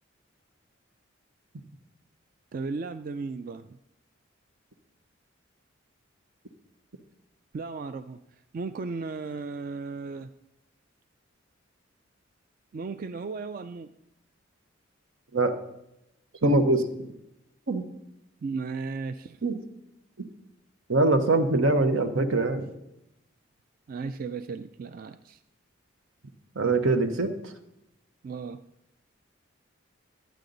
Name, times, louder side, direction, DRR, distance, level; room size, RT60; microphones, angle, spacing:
voice 1, 2.5-3.7 7.5-8.2 8.5-10.3 12.7-13.9 18.4-19.4 23.9-25.4 28.2-28.6, right 4 dB, 45° right, 10 dB, 0.3 m, -35 dB
voice 2, 16.4-16.9 17.7-17.9 19.4-19.6 20.2-20.3 20.9-22.6 26.5-27.5, right 2 dB, 85° right, 7 dB, 1.0 m, -23 dB
12.5 x 9.1 x 3.9 m, 0.85 s
head